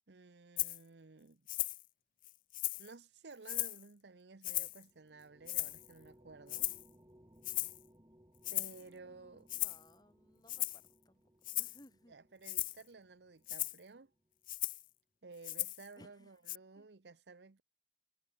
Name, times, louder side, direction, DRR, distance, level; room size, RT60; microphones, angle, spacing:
voice 1, 0.1-1.5 2.8-6.7 8.5-9.5 12.1-14.1 15.2-17.6, right 3 dB, 80° right, 0.8 m, -55 dB
Rattle (instrument), 0.6-0.8 1.5-1.8 2.2-2.9 3.4-3.8 4.4-4.8 5.5-5.9 6.5-6.9 7.4-7.8 8.4-8.8 9.5-9.8 10.5-10.9 11.4-11.8 12.4-12.8 13.5-13.8 14.5-14.8 15.4-15.9 16.5-16.6, left 19 dB, 50° left, 0.4 m, -37 dB
sound 1, 4.6-14.3, equal, 20° right, 1.8 m, -66 dB
voice 2, 8.7-12.1 16.0-16.3 16.8-16.9, left 1 dB, 20° left, 2.2 m, -63 dB
head